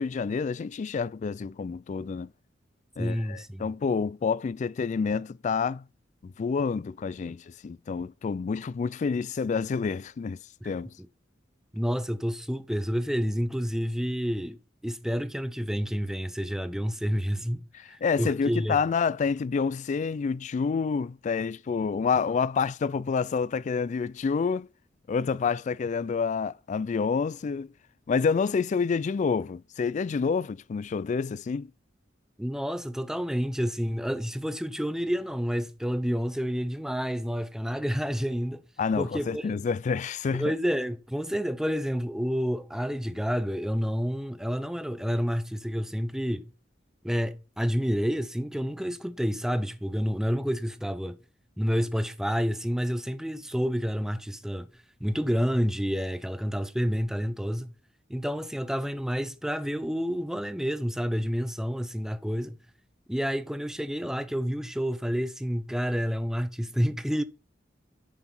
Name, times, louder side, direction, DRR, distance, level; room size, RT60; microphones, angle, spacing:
voice 1, 0.0-2.3 3.0-5.8 6.2-10.4 10.6-10.9 17.7-24.7 25.1-27.7 28.1-31.7 38.8-40.5, left 5 dB, 40° left, 0.3 m, -28 dB
voice 2, 3.0-3.7 10.6-10.7 11.7-14.6 14.8-17.6 17.9-18.8 32.4-38.6 39.0-39.6 40.3-46.5 47.0-51.2 51.6-54.7 55.0-57.7 58.1-62.6 63.1-67.2, equal, 5° right, 0.7 m, -29 dB
9.0 x 6.0 x 4.4 m
head